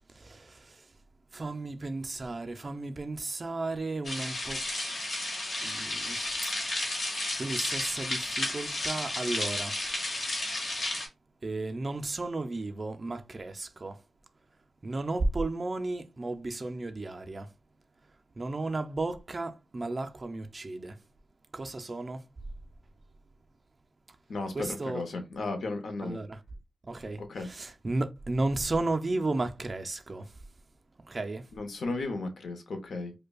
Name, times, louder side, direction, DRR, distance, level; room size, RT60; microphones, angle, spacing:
voice 1, 0.1-0.9 1.3-4.6 5.6-6.3 7.1-9.8 10.8-10.9 11.4-14.0 14.8-17.5 18.4-21.0 21.5-22.3 24.5-25.0 26.0-26.4 26.8-30.4 31.1-31.5, right 2 dB, 30° right, 0.3 m, -34 dB
sound 1, 4.0-11.1, left 2 dB, 45° left, 1.1 m, -32 dB
voice 2, 24.3-26.2 27.2-27.5 31.5-33.1, left 3 dB, 60° left, 0.7 m, -35 dB
5.0 x 2.1 x 2.3 m
wide cardioid pair, 165°, 0 cm